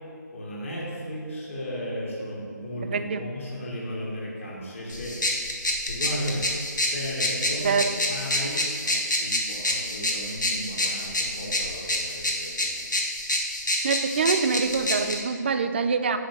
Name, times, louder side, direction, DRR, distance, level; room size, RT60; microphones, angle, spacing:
voice 1, 0.3-5.2 5.8-6.5 6.8-7.8 8.1-12.8, equal, 45° left, -5 dB, 1.6 m, -35 dB
voice 2, 2.9-3.2 7.6-7.9 13.8-16.2, right 5 dB, 35° right, 9 dB, 0.4 m, -25 dB
sound 1, 4.9-15.2, left 1 dB, 80° left, 1.2 m, -28 dB
5.5 x 4.7 x 6.0 m, 2.4 s
figure-of-eight pair, 150°, 10 cm